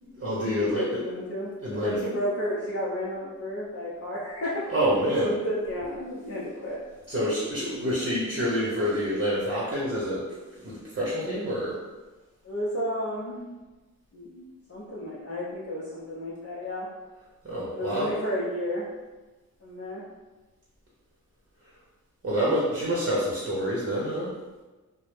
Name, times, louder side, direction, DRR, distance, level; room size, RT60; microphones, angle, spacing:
voice 1, 0.0-1.0 1.6-2.0 4.7-5.3 7.1-10.3 10.5-11.8 17.4-18.1 22.2-24.3, equal, 35° right, -6 dB, 0.8 m, -27 dB
voice 2, 0.6-4.7 5.2-6.8 12.4-13.4 14.1-16.9 17.7-18.9 19.6-20.0, equal, 45° left, -8 dB, 0.6 m, -32 dB
2.1 x 2.0 x 3.1 m, 1.2 s
cardioid pair, 45°, 34 cm